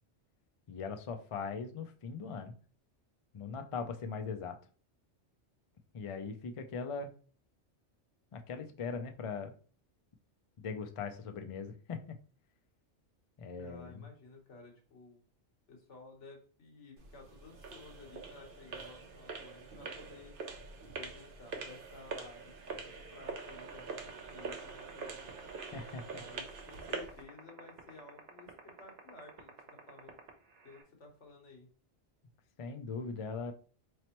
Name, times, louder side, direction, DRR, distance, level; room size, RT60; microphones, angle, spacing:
voice 1, 0.7-2.5 3.3-4.6 5.9-7.1 8.3-9.5 10.6-12.0 13.4-14.0 25.7-26.2 32.6-33.5, left 5 dB, 45° left, 6 dB, 0.4 m, -40 dB
voice 2, 13.6-15.2 15.7-20.4 20.9-25.5 26.1-30.2 30.6-31.7, left 3 dB, 85° left, 1 dB, 1.5 m, -54 dB
sound 1, 17.0-27.2, right 4 dB, 55° right, 0.8 m, -44 dB
sound 2, 23.3-30.8, right 8 dB, 80° right, 1.1 m, -49 dB
4.2 x 3.2 x 2.9 m, 0.41 s
omnidirectional pair, 1.2 m